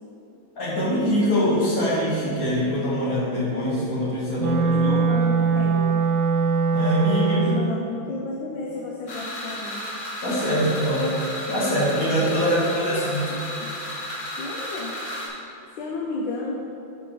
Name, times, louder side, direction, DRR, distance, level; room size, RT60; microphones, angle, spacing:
voice 1, 0.6-5.0 6.7-7.4 10.2-11.1 11.5-13.2, equal, 45° left, -7 dB, 2.7 m, -23 dB
voice 2, 4.4-6.0 7.2-9.8 12.4-13.7 14.4-14.9 15.8-16.5, left 3 dB, 70° left, -1 dB, 1.5 m, -32 dB
Wind instrument woodwind instrument, 4.4-7.8, right 5 dB, 75° right, 1.4 m, -21 dB
sound 1, 9.1-15.3, left 1 dB, 85° left, 3.1 m, -33 dB
11.0 x 5.2 x 5.0 m, 2.9 s
omnidirectional pair, 2.2 m